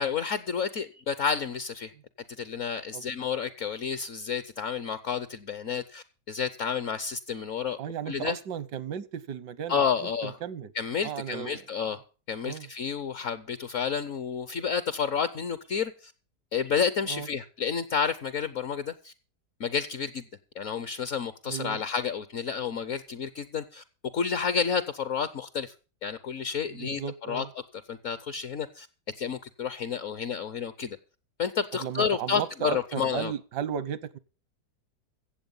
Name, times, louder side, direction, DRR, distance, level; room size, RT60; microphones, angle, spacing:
voice 1, 0.0-1.9 2.4-7.8 8.1-8.4 9.7-10.3 10.7-12.0 12.3-16.1 16.5-19.1 19.6-20.2 20.6-23.8 24.1-25.7 26.0-27.4 27.7-28.9 29.2-31.0 31.4-33.3, left 6 dB, 60° left, 1.0 m, -30 dB
voice 2, 7.8-9.8 10.2-10.7 11.0-11.6 12.4-12.7 17.1-17.3 21.5-21.8 26.7-27.5 31.8-34.2, right 8 dB, 85° right, 1.5 m, -35 dB
16.0 x 7.6 x 5.4 m
omnidirectional pair, 1.8 m